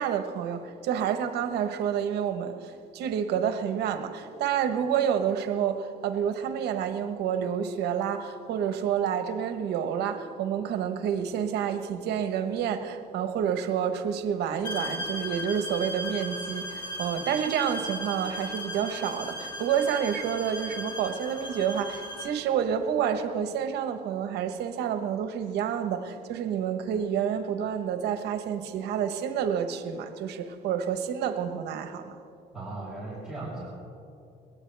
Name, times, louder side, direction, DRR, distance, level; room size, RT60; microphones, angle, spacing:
voice 1, 0.0-32.1, right 8 dB, 80° right, 1.2 m, -29 dB
sound 1, 14.6-22.4, equal, 25° left, 3.2 m, -37 dB
voice 2, 32.5-33.7, right 2 dB, 5° right, 3.5 m, -37 dB
21.5 x 17.5 x 3.4 m
cardioid pair, 110°, 17 cm